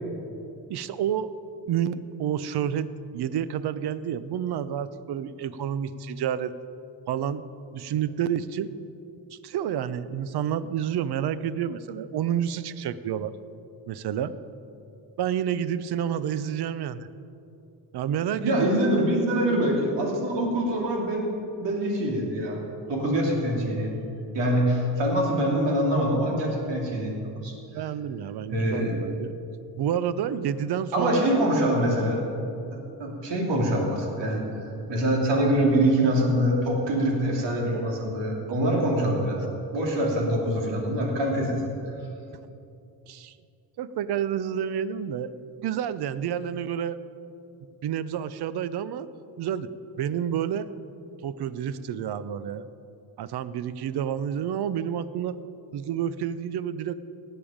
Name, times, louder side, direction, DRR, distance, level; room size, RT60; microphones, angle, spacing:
voice 1, 0.7-1.3 1.7-2.9 3.1-6.6 7.1-7.4 7.7-8.7 9.3-13.4 13.9-14.3 15.2-17.1 17.9-18.7 27.7-29.3 29.8-31.5 37.4-38.1 40.1-40.2 43.1-43.3 43.8-45.3 45.6-47.0 47.8-49.1 49.4-49.7 50.0-50.7 51.2-52.7 53.2-55.4 55.7-56.9, right 9 dB, 65° right, 15 dB, 0.7 m, -29 dB
voice 2, 18.4-21.3 21.6-22.6 22.9-24.0 24.3-27.5 28.5-29.0 30.9-32.2 32.7-39.4 39.7-41.6, right 1 dB, 85° right, -1 dB, 2.9 m, -24 dB
17.5 x 9.0 x 5.1 m, 2.7 s
cardioid pair, 105°, 42 cm